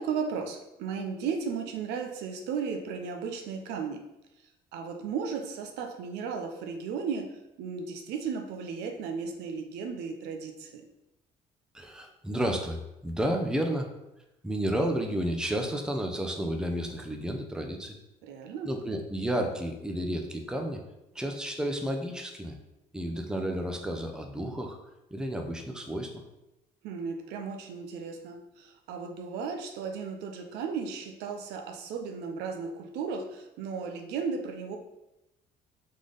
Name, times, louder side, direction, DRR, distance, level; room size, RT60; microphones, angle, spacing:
voice 1, 0.0-4.0 4.7-7.3 7.6-10.8 18.2-18.7 26.8-34.8, right 5 dB, 90° right, 5 dB, 0.6 m, -35 dB
voice 2, 11.7-13.9 14.4-17.9 18.6-20.8 21.1-22.6 22.9-24.8 25.1-26.1, right 1 dB, 5° right, 3 dB, 0.6 m, -31 dB
3.7 x 3.3 x 3.9 m, 0.92 s
cardioid pair, 110°, 17 cm